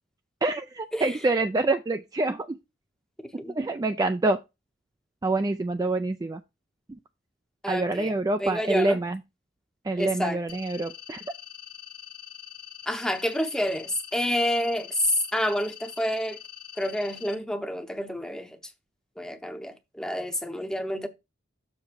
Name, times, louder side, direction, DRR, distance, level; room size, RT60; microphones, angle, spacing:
voice 1, 0.4-2.6 3.5-4.4 5.2-6.4 6.9-7.0 7.7-9.2 9.8-11.2, right 2 dB, 20° right, 0.3 m, -26 dB
voice 2, 7.6-8.1 8.4-9.0 10.0-10.4 12.9-16.4 16.8-18.6 19.2-21.1, left 1 dB, 5° left, 0.7 m, -28 dB
sound 1, 10.5-17.3, left 11 dB, 50° left, 1.2 m, -44 dB
6.9 x 3.3 x 6.1 m
head